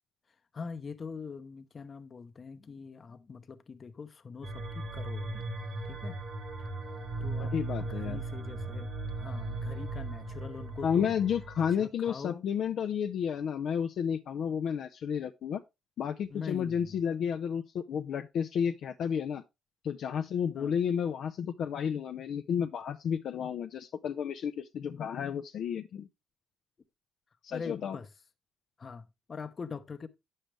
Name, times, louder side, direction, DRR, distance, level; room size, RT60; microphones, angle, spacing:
voice 1, 0.5-5.6 5.8-6.2 7.2-7.5 7.8-8.9 9.2-11.1 11.8-12.4 16.3-17.0 20.5-20.7 27.5-28.1 28.8-30.1, left 5 dB, 40° left, 0.8 m, -43 dB
sound 1, 4.4-11.7, right 2 dB, 60° right, 1.7 m, -37 dB
voice 2, 7.4-8.2 10.8-15.6 16.0-19.4 19.8-26.1 27.4-28.0, left 8 dB, 70° left, 0.5 m, -32 dB
8.9 x 6.5 x 3.3 m
cardioid pair, 90°, 0 cm